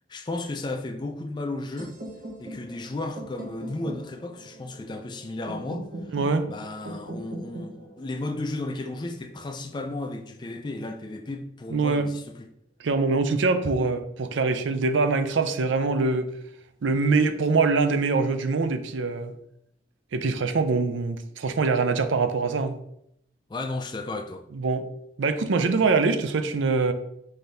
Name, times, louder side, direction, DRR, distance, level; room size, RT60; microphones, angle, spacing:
voice 1, 0.1-2.0 2.4-6.2 6.5-12.5 23.5-24.5, left 2 dB, 25° left, 0.3 m, -34 dB
sound 1, 1.8-9.7, right 1 dB, 50° right, 1.0 m, -41 dB
voice 2, 6.1-6.5 11.7-12.1 12.8-16.3 16.8-19.3 20.1-22.8 24.5-24.8 25.2-26.9, right 4 dB, 80° right, 0.5 m, -24 dB
5.7 x 2.7 x 3.4 m
head